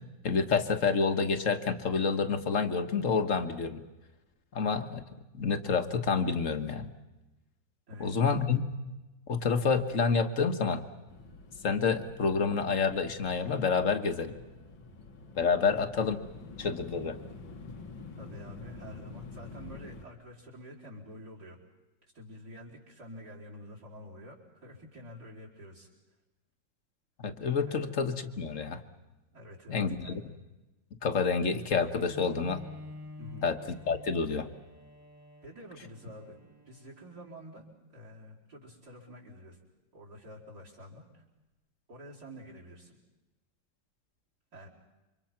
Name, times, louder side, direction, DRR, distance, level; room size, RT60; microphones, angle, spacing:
voice 1, 0.2-3.8 4.5-5.0 5.3-6.9 8.0-8.6 9.3-10.8 11.6-14.3 15.4-16.3 16.6-17.2 27.2-28.8 29.7-30.2 31.0-32.6 33.4-33.6 33.9-34.5, left 5 dB, 45° left, 8 dB, 1.6 m, -28 dB
voice 2, 7.9-8.3 15.6-15.8 18.1-21.6 22.0-25.9 27.7-27.9 29.3-30.2 33.2-33.5 35.4-36.4 36.7-39.6 39.9-41.2 41.9-42.9 44.5-44.7, equal, 55° right, 2 dB, 5.1 m, -48 dB
sound 1, 11.1-20.0, left 3 dB, 85° left, 2.7 m, -47 dB
Bowed string instrument, 31.9-37.6, left 1 dB, 75° right, 6.0 m, -50 dB
28.5 x 25.5 x 5.9 m, 1.1 s
omnidirectional pair, 2.0 m